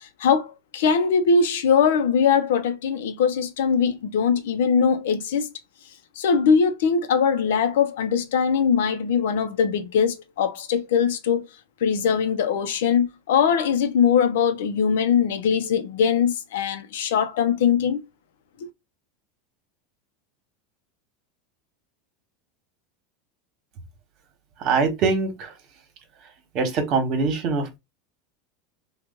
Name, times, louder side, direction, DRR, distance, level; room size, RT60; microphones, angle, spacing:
voice 1, 0.2-5.5 6.2-11.5 11.8-18.0, left 6 dB, 80° left, 0.7 m, -21 dB
voice 2, 24.6-25.5 26.5-27.8, right 4 dB, 50° right, 1.2 m, -23 dB
3.0 x 2.4 x 3.6 m
supercardioid pair, 110°, 0 cm